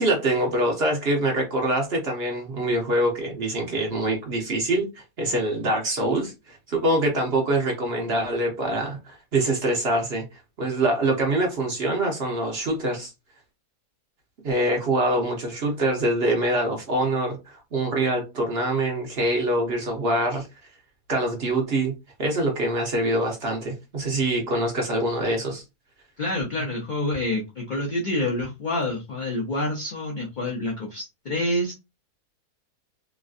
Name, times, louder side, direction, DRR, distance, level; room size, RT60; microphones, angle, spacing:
voice 1, 0.0-10.2 10.6-13.1 14.4-20.5 21.1-21.9 22.2-25.6, right 1 dB, 50° right, 0.8 m, -24 dB
voice 2, 26.2-31.7, left 1 dB, 85° left, 0.4 m, -27 dB
3.0 x 2.5 x 2.4 m
omnidirectional pair, 1.7 m